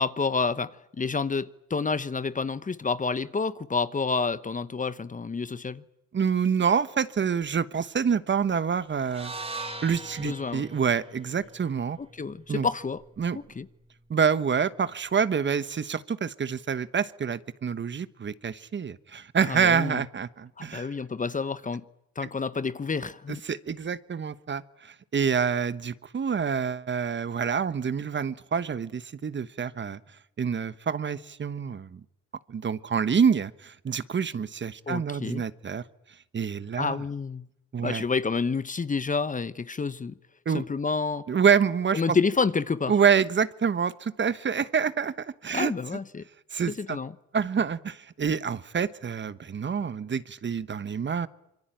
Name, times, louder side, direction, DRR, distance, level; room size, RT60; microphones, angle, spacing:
voice 1, 0.0-5.8 10.2-10.6 12.0-13.0 13.6-13.7 19.5-20.0 20.6-21.8 22.2-23.4 34.9-35.4 36.7-37.5 37.8-40.1 40.5-41.3 41.9-42.9 45.5-46.2 46.7-47.1, left 4 dB, 25° left, 1.0 m, -29 dB
voice 2, 6.1-9.3 9.8-12.0 12.5-12.7 13.2-13.4 14.1-20.9 23.4-30.0 30.4-32.0 32.5-35.8 36.3-37.0 37.7-38.0 40.4-40.6 41.3-42.2 42.9-45.7 46.5-47.0 47.3-51.3, right 6 dB, 40° right, 1.2 m, -27 dB
sound 1, 9.0-13.2, right 2 dB, 20° right, 3.2 m, -41 dB
26.5 x 23.5 x 9.1 m
cardioid pair, 90°, 30 cm